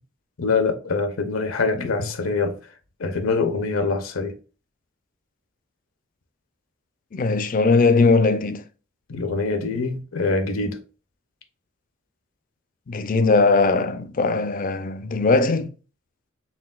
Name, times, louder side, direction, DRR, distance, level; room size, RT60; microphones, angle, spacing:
voice 1, 0.4-2.6 3.0-4.4 9.1-10.8, left 4 dB, 80° left, 0.7 m, -24 dB
voice 2, 7.1-8.6 12.9-15.7, left 3 dB, 40° left, 0.4 m, -19 dB
4.7 x 3.5 x 2.3 m
head